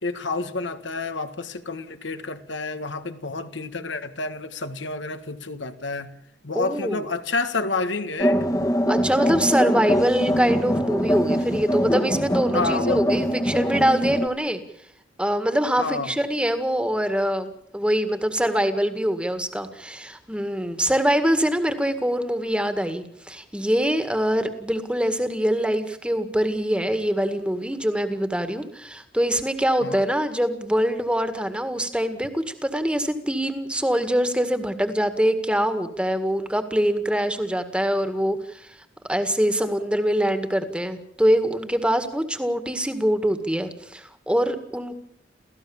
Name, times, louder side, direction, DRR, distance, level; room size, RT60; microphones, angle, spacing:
voice 1, 0.0-6.1 6.4-8.4 12.5-13.1 15.8-16.2 29.8-30.0, left 3 dB, 75° left, 1.7 m, -29 dB
voice 2, 6.6-7.0 8.9-14.6 15.2-38.7 39.1-44.9, equal, 5° right, 1.9 m, -24 dB
sound 1, 8.2-14.3, equal, 20° left, 1.5 m, -23 dB
29.5 x 15.0 x 7.2 m
head